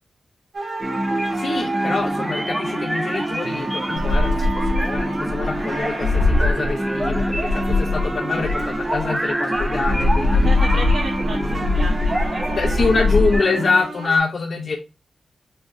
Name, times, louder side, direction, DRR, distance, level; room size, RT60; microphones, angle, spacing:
sound 1, 0.5-14.2, right 2 dB, 55° right, 1.1 m, -32 dB
sound 2, 0.8-13.8, right 1 dB, 10° right, 0.4 m, -26 dB
voice 1, 1.3-10.8 12.5-14.8, left 4 dB, 50° left, 2 dB, 0.5 m, -25 dB
sound 3, 4.0-9.0 9.6-13.4, left 2 dB, 30° left, 1.3 m, -21 dB
voice 2, 10.3-12.9, right 2 dB, 85° right, -7 dB, 1.3 m, -32 dB
4.5 x 2.9 x 2.5 m, 0.30 s
wide cardioid pair, 155°, 0 cm